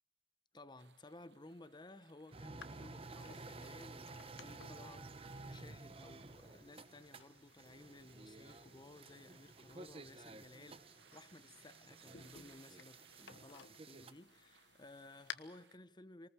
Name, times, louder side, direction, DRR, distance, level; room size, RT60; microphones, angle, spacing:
voice 1, 0.5-16.3, left 2 dB, 25° left, 0.9 m, -57 dB
sound 1, 0.8-15.8, right 7 dB, 70° right, 0.9 m, -70 dB
sound 2, 2.3-14.1, right 3 dB, 35° right, 0.9 m, -53 dB
sound 3, 2.6-15.3, left 7 dB, 80° left, 1.3 m, -58 dB
27.0 x 19.5 x 7.1 m
head